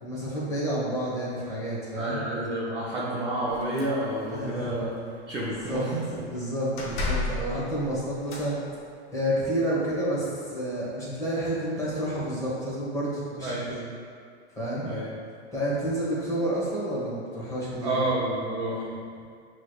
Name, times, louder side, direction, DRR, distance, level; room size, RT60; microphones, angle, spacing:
voice 1, 0.0-2.2 4.3-4.8 5.6-5.8 6.1-8.6 9.1-13.8 14.5-15.0 15.5-18.0, right 1 dB, 10° left, -7 dB, 1.1 m, -30 dB
voice 2, 2.0-4.9 5.3-6.0 13.4-13.8 14.8-15.1 17.8-19.0, right 1 dB, 15° right, -7 dB, 0.4 m, -29 dB
sound 1, 3.5-4.4 4.8-5.1 5.4-6.1 6.8-8.5, left 2 dB, 50° left, 0.9 m, -33 dB
6.2 x 3.1 x 2.3 m, 2.2 s
supercardioid pair, 135°, 34 cm